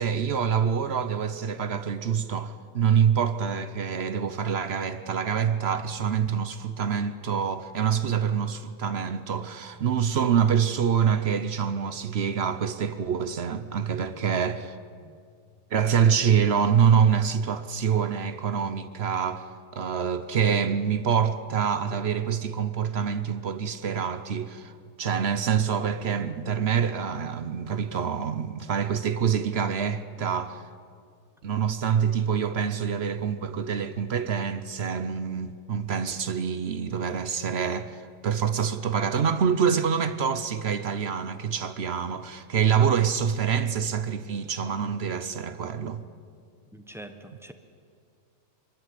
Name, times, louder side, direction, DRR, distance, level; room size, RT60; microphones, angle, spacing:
voice 1, 0.0-14.8 15.7-19.4 19.7-24.7 25.0-30.6 31.4-46.0, right 7 dB, 55° right, 0.8 m, -26 dB
voice 2, 46.7-47.5, right 1 dB, ahead, 0.8 m, -44 dB
24.0 x 12.5 x 9.7 m
omnidirectional pair, 1.8 m